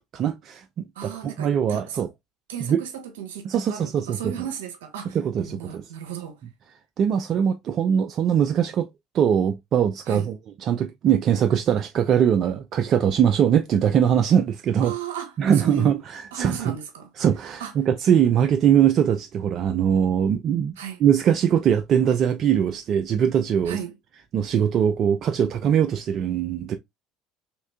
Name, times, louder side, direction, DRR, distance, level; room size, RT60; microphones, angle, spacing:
voice 1, 0.1-1.1 1.4-2.1 2.6-2.8 3.4-4.3 5.1-5.9 7.0-8.9 9.1-14.9 15.4-16.8 17.2-23.8 24.3-26.8, right 8 dB, 50° right, 0.3 m, -21 dB
voice 2, 1.0-2.0 2.5-6.4 10.1-10.3 14.8-15.3 15.6-15.9 16.3-17.1 17.6-17.7 20.8-21.0 23.7-23.9, right 8 dB, 80° right, 0.8 m, -35 dB
3.3 x 2.9 x 2.2 m
hypercardioid pair, 70°, 0 cm